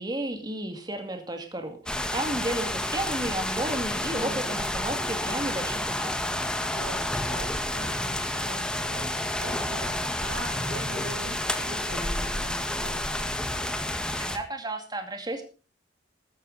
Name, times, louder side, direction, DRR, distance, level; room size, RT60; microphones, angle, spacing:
voice 1, 0.0-6.4 14.2-15.4, right 1 dB, 25° right, 5 dB, 2.3 m, -33 dB
sound 1, 1.9-14.4, left 1 dB, 5° left, 1.7 m, -30 dB
voice 2, 4.1-4.7 6.7-13.1, right 1 dB, 80° right, 5 dB, 5.9 m, -41 dB
14.5 x 14.0 x 4.1 m, 0.34 s
head